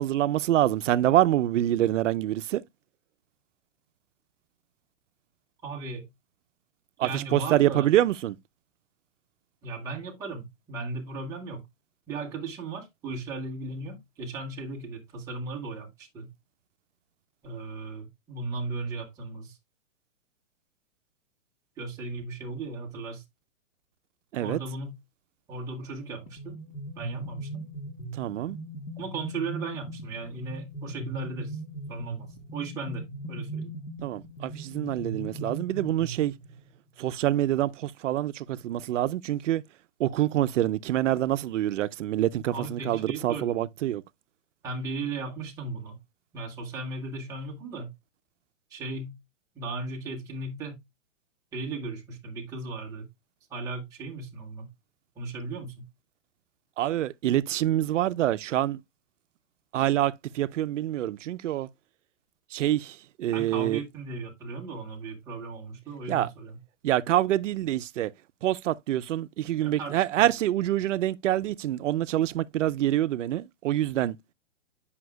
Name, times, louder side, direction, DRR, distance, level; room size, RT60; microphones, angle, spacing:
voice 1, 0.0-2.6 7.0-8.4 24.3-24.6 28.1-28.6 34.0-36.3 37.0-39.6 40.0-44.0 56.8-58.8 59.7-61.7 62.5-63.8 66.1-66.3 66.8-68.1 68.4-74.2, right 13 dB, 75° right, 0.5 m, -26 dB
voice 2, 5.6-6.1 7.0-7.9 9.6-11.6 12.1-16.3 17.4-19.6 21.8-23.2 24.4-24.9 25.5-26.6 26.9-27.6 29.0-31.6 31.9-33.7 42.5-43.7 44.6-46.0 46.3-47.9 48.7-49.2 49.5-50.8 51.5-53.0 53.5-54.7 55.2-55.8 63.3-66.6 69.6-70.2, right 3 dB, 10° right, 0.8 m, -36 dB
sound 1, 26.3-36.7, right 2 dB, 55° left, 1.6 m, -39 dB
7.8 x 5.7 x 2.2 m
hypercardioid pair, 170°, 37 cm